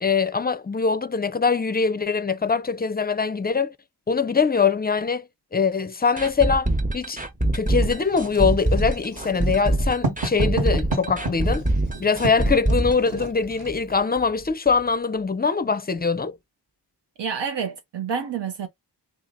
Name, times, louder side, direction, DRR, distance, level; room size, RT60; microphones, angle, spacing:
voice 1, 0.0-3.7 4.1-7.2 7.5-11.6 12.0-16.4, left 5 dB, 25° left, 0.4 m, -23 dB
sound 1, 6.2-13.9 14.2-14.3 14.7-14.8, right 1 dB, 20° right, 0.7 m, -24 dB
Writing, 7.8-13.8, right 2 dB, 65° right, 1.5 m, -32 dB
voice 2, 17.2-18.7, right 6 dB, 85° right, 0.6 m, -28 dB
2.8 x 2.4 x 3.8 m
cardioid pair, 45°, 42 cm